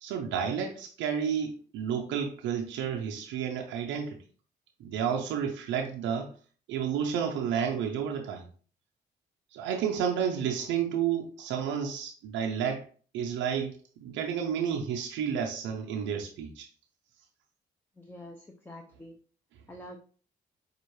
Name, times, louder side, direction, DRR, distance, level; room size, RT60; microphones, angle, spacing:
voice 1, 0.0-4.2 4.8-6.3 6.7-8.5 9.5-12.9 13.1-16.7, right 7 dB, 80° right, 0.5 m, -31 dB
voice 2, 18.0-19.1 19.7-20.0, left 1 dB, 10° left, 0.7 m, -46 dB
5.2 x 2.4 x 3.1 m
supercardioid pair, 55°, 19 cm